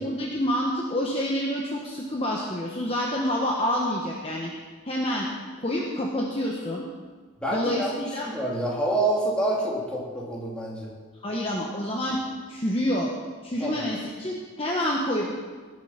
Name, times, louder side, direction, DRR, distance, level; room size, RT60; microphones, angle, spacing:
voice 1, 0.0-4.5 4.9-5.3 5.6-6.8 7.5-8.3 11.2-12.2 12.5-13.1 13.4-15.3, equal, 30° left, -2 dB, 1.3 m, -27 dB
voice 2, 7.4-10.9 13.6-13.9, right 1 dB, 5° left, -5 dB, 2.9 m, -27 dB
18.5 x 7.9 x 5.8 m, 1.5 s
head